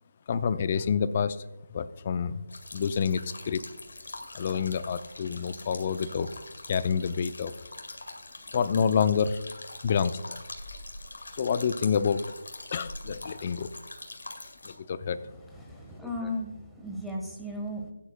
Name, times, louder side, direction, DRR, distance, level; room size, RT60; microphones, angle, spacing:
voice 1, 0.3-1.4 1.7-2.4 2.7-3.2 3.5-3.6 4.3-6.3 6.7-7.5 8.5-9.4 9.8-10.4 11.4-12.2 12.7-13.7 14.6-15.2, left 6 dB, 35° left, 13 dB, 0.6 m, -27 dB
sound 1, 2.5-14.7, left 2 dB, 70° left, 2.0 m, -43 dB
voice 2, 15.2-17.9, left 1 dB, ahead, -2 dB, 1.4 m, -36 dB
16.0 x 10.0 x 2.3 m, 0.96 s
figure-of-eight pair, 155°, 0 cm